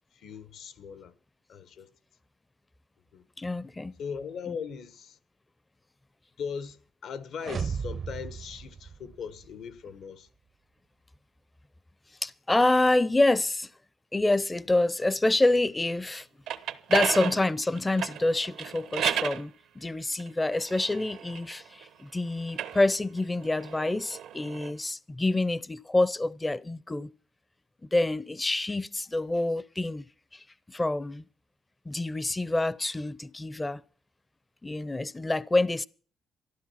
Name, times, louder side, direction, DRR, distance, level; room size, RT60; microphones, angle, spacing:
voice 1, 0.1-1.1 1.5-1.9 3.1-3.2 4.0-5.2 6.4-10.3, left 6 dB, 75° left, 1.1 m, -39 dB
voice 2, 3.4-3.9 4.5-4.6 12.2-13.7 14.1-16.3 16.9-27.1 27.8-30.0 30.3-31.2 31.9-33.8 34.6-35.9, left 2 dB, 15° left, 0.5 m, -27 dB
sound 1, 7.4-9.5, right 6 dB, 45° right, 0.6 m, -35 dB
sound 2, 16.2-19.4 20.2-21.9 22.4-24.7, right 10 dB, 85° right, 0.9 m, -34 dB
13.5 x 12.0 x 5.7 m
cardioid pair, 90°, 0 cm